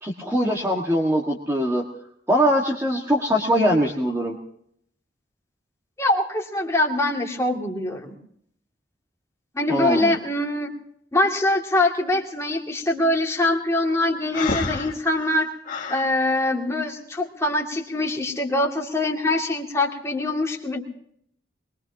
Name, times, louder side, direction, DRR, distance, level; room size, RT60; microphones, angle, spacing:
voice 1, 0.0-1.8 2.3-4.3 9.7-10.1, equal, 15° right, -2 dB, 1.7 m, -22 dB
voice 2, 6.0-8.1 9.5-10.7 11.1-15.5 15.9-20.8, left 2 dB, 15° left, -1 dB, 2.4 m, -23 dB
Breathing, 14.3-16.1, left 3 dB, 45° left, 1.9 m, -29 dB
23.0 x 22.0 x 2.9 m, 0.68 s
head